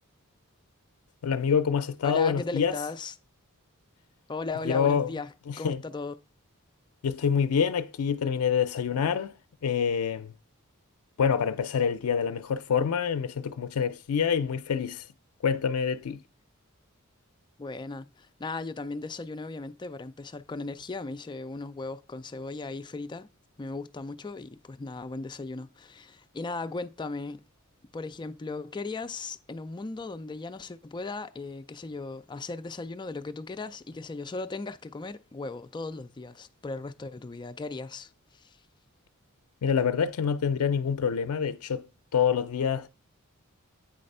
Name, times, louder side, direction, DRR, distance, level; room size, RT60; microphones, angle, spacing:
voice 1, 1.2-2.7 4.7-5.1 5.5-5.8 7.0-9.3 9.6-10.3 11.2-15.0 15.4-16.2 39.6-41.9 42.1-42.9, left 7 dB, 85° left, 0.4 m, -26 dB
voice 2, 2.0-3.1 4.3-6.1 17.6-23.3 23.6-27.4 27.9-38.6, left 3 dB, 20° left, 0.4 m, -37 dB
8.5 x 3.3 x 5.4 m
head